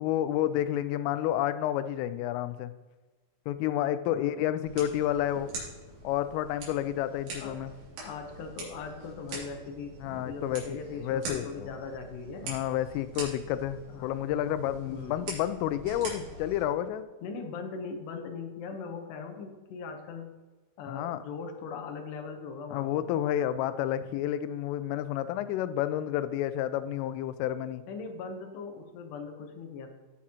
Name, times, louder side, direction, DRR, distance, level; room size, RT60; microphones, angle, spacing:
voice 1, 0.0-2.7 3.5-5.5 6.0-7.7 10.0-11.7 12.4-17.1 20.8-21.2 22.7-27.8, left 12 dB, 90° left, 12 dB, 3.1 m, -30 dB
voice 2, 4.1-4.5 7.4-7.6 8.0-10.0 10.2-12.5 13.9-14.2 14.9-15.3 17.2-20.3 20.8-23.1 27.9-29.9, left 5 dB, 70° left, 4 dB, 2.8 m, -40 dB
sound 1, 4.6-16.6, right 2 dB, 80° right, 5.5 m, -43 dB
17.0 x 6.1 x 2.9 m, 1.2 s
omnidirectional pair, 5.7 m